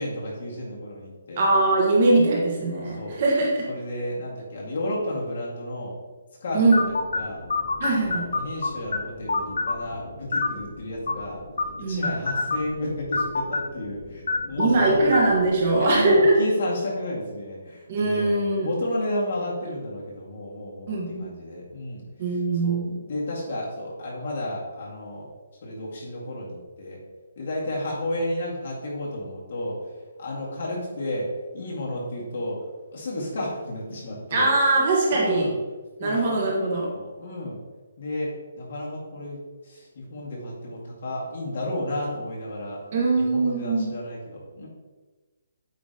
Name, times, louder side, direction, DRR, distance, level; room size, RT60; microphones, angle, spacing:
voice 1, 0.0-1.4 2.8-3.2 3.7-6.0 6.4-7.4 8.0-11.4 11.9-15.1 15.7-22.0 22.6-22.8 23.1-25.3 25.6-27.0 27.4-29.8 30.2-32.6 32.9-34.5 35.1-35.5 36.0-36.4 36.9-37.6 38.0-42.8 43.1-44.7, left 1 dB, 50° left, -4 dB, 2.0 m, -32 dB
voice 2, 1.4-3.7 6.5-6.8 7.8-8.3 11.8-12.1 14.6-16.4 17.9-18.7 20.9-21.3 22.2-23.0 34.3-35.5 36.0-36.9 42.9-43.9, right 2 dB, 35° right, -2 dB, 1.4 m, -21 dB
sound 1, 6.7-16.2, left 3 dB, 80° left, 0.8 m, -30 dB
8.4 x 3.1 x 4.0 m, 1.3 s
hypercardioid pair, 175°, 0 cm